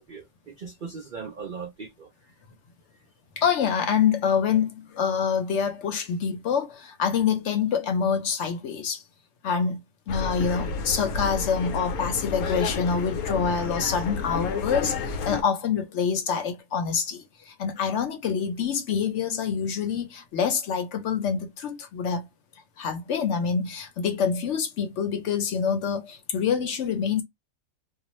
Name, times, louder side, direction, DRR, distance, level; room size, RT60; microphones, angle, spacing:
voice 1, 0.0-2.3, right 5 dB, 75° right, 0.4 m, -39 dB
voice 2, 3.4-9.0 9.4-9.8 10.1-22.3 22.8-27.2, left 6 dB, 60° left, 0.8 m, -26 dB
sound 1, 10.1-15.4, left 4 dB, 85° left, 1.1 m, -30 dB
2.4 x 2.3 x 3.0 m
omnidirectional pair, 1.5 m